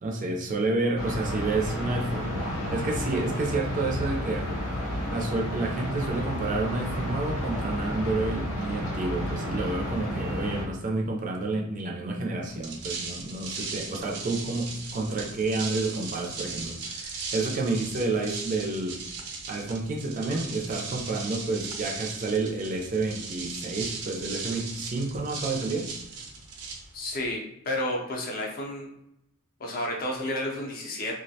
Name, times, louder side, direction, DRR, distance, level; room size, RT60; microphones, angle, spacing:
voice 1, 0.0-4.6 5.1-19.0 19.5-25.8, right 3 dB, 35° right, 0 dB, 0.4 m, -30 dB
sound 1, 1.0-10.6, equal, 90° left, 0.8 m, -31 dB
sound 2, 12.5-27.3, right 4 dB, 90° right, 0.5 m, -38 dB
voice 2, 26.9-28.9 29.6-31.2, left 1 dB, 40° left, -1 dB, 0.5 m, -31 dB
2.3 x 2.1 x 2.7 m, 0.81 s
head